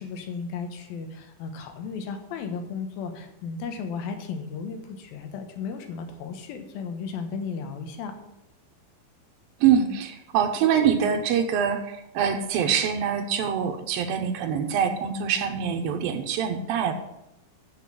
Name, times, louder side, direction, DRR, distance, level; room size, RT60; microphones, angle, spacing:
voice 1, 0.0-8.2, left 5 dB, 85° left, 6 dB, 3.0 m, -35 dB
voice 2, 9.6-16.9, right 8 dB, 80° right, 5 dB, 2.8 m, -24 dB
7.9 x 7.5 x 7.6 m, 0.84 s
omnidirectional pair, 4.2 m